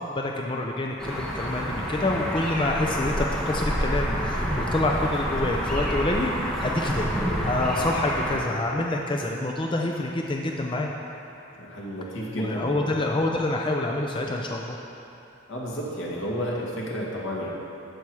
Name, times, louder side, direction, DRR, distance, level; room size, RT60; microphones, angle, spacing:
voice 1, 0.0-6.3 6.6-7.1 7.4-10.9 12.4-14.8, left 2 dB, 25° left, 0 dB, 0.5 m, -27 dB
sound 1, 1.0-8.4, equal, 5° left, 1.2 m, -28 dB
voice 2, 11.6-12.9 15.5-17.5, equal, 80° left, -4 dB, 2.0 m, -32 dB
14.5 x 5.9 x 4.8 m, 2.8 s
head